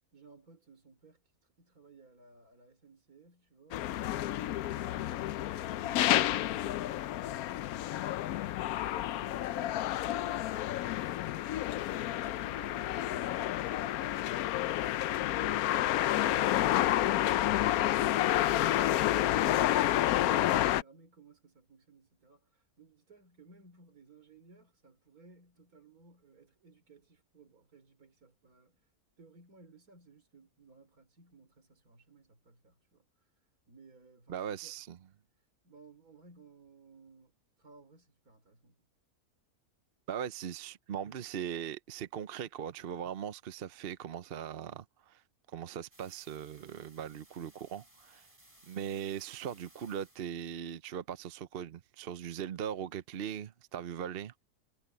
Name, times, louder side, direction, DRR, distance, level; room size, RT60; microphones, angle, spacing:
voice 1, 0.1-8.5 8.8-17.5 18.1-28.9 29.2-33.1 33.7-34.8 35.6-38.9, right 3 dB, 75° right, 3.9 m, -59 dB
sound 1, 3.7-20.8, left 13 dB, 80° left, 1.1 m, -30 dB
voice 2, 34.3-35.0 40.1-45.2 45.5-48.3 48.7-54.3, right 9 dB, 50° right, 0.8 m, -39 dB
sound 2, 45.9-50.3, right 1 dB, 20° right, 4.2 m, -61 dB
omnidirectional pair, 1.6 m